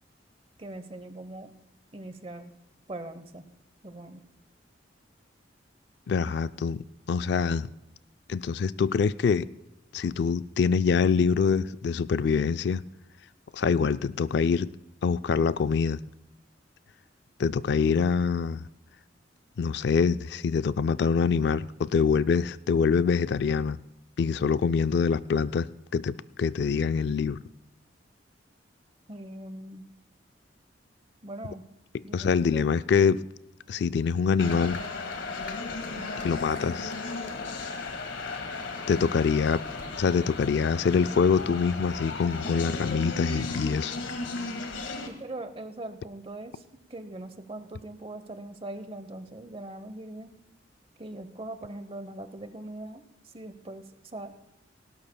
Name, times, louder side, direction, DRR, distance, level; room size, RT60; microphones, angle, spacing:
voice 1, 0.6-1.5 1.9-2.5 2.9-3.5 3.8-4.2 29.1-29.9 31.2-31.7 32.0-32.6 35.9-36.2 45.1-46.6 46.9-50.4 51.0-54.3, right 1 dB, 30° right, 0.9 m, -41 dB
voice 2, 6.1-6.8 7.1-7.7 8.3-9.5 9.9-12.8 13.5-14.7 15.0-16.0 17.4-18.6 19.6-23.8 24.2-25.7 25.9-27.4 32.1-33.2 33.7-34.8 36.2-36.9 38.9-39.6 40.0-43.9, left 5 dB, 60° left, 0.3 m, -25 dB
sound 1, 34.4-45.1, left 3 dB, 85° left, 1.8 m, -35 dB
18.5 x 17.0 x 2.3 m
head